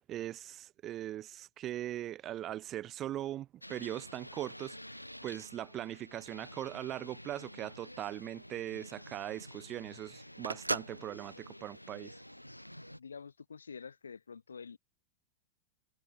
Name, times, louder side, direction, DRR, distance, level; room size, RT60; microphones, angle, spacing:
voice 1, 0.1-4.8 5.2-12.1, right 12 dB, 30° right, 2.0 m, -40 dB
sound 1, 3.6-13.0, equal, 90° left, 7.0 m, -50 dB
Telephone, 7.5-12.8, right 2 dB, 85° right, 1.1 m, -41 dB
voice 2, 13.0-14.8, left 5 dB, 75° left, 2.0 m, -47 dB
figure-of-eight pair, 90°, 0 cm